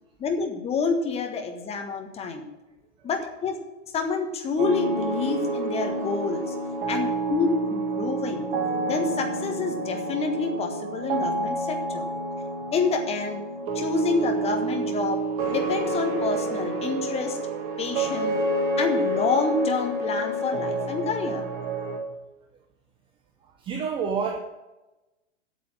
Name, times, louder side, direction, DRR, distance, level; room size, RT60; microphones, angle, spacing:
voice 1, 0.2-2.4 3.0-3.6 3.9-6.5 6.9-8.5 8.8-12.1 12.7-13.4 13.7-17.4 17.8-18.3 18.8-21.5, left 4 dB, 15° left, 4 dB, 1.4 m, -28 dB
sound 1, 4.6-22.0, right 2 dB, 30° right, 1.7 m, -28 dB
voice 2, 23.4-24.4, right 6 dB, 15° right, 4 dB, 0.6 m, -30 dB
8.8 x 7.0 x 8.8 m, 1.1 s
figure-of-eight pair, 110°, 38 cm